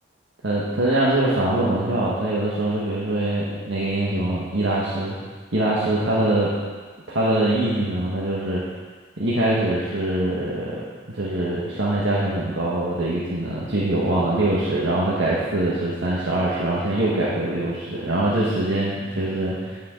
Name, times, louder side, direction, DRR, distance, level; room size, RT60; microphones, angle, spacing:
voice 1, 0.4-5.1 5.5-6.5 7.1-8.6 9.2-19.9, right 1 dB, 85° right, -7 dB, 1.4 m, -23 dB
11.0 x 6.8 x 3.8 m, 1.5 s
head